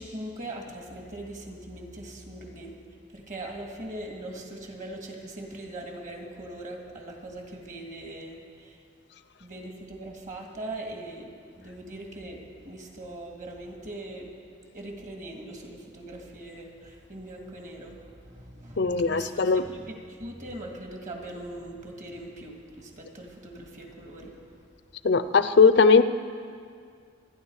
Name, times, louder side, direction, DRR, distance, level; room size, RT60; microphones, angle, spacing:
voice 1, 0.0-2.7 3.1-8.8 9.4-11.3 11.6-14.3 14.7-24.4, right 1 dB, 40° right, 1 dB, 2.2 m, -41 dB
voice 2, 18.8-19.6 25.0-26.0, left 4 dB, 60° left, 12 dB, 0.6 m, -19 dB
27.0 x 10.5 x 4.8 m, 2.2 s
head